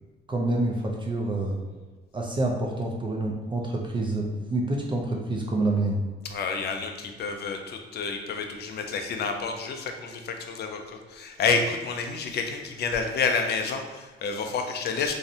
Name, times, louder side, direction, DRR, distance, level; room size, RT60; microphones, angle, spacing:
voice 1, 0.3-1.6 2.1-6.0, right 2 dB, 25° right, 0 dB, 0.3 m, -27 dB
voice 2, 6.3-15.2, left 5 dB, 55° left, 5 dB, 0.4 m, -29 dB
2.6 x 2.0 x 2.6 m, 1.3 s
cardioid pair, 90°, 20 cm